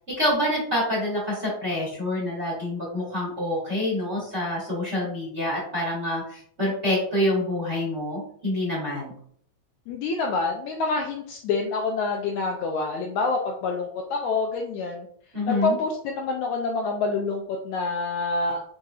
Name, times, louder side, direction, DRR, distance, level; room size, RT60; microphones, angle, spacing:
voice 1, 0.2-9.1 15.3-15.8, left 1 dB, 30° right, -4 dB, 1.4 m, -27 dB
voice 2, 9.9-15.1 15.5-18.6, left 3 dB, 90° left, 1 dB, 1.7 m, -27 dB
5.5 x 3.7 x 2.4 m, 0.63 s
omnidirectional pair, 3.9 m